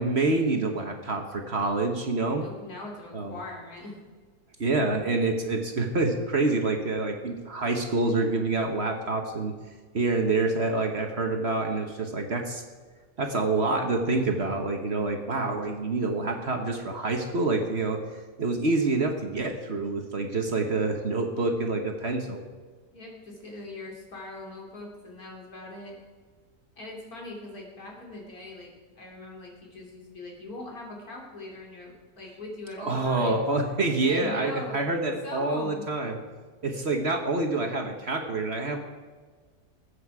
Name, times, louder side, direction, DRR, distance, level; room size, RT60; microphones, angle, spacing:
voice 1, 0.0-2.4 3.1-3.4 4.6-9.5 9.9-12.6 13.2-18.0 18.4-22.4 32.8-36.2 36.6-38.8, right 3 dB, 45° right, 4 dB, 1.4 m, -27 dB
voice 2, 2.3-4.0 22.9-25.9 26.8-33.4 34.1-34.8 35.1-35.8, left 2 dB, 65° left, -1 dB, 3.4 m, -41 dB
20.0 x 8.3 x 4.8 m, 1.5 s
omnidirectional pair, 1.7 m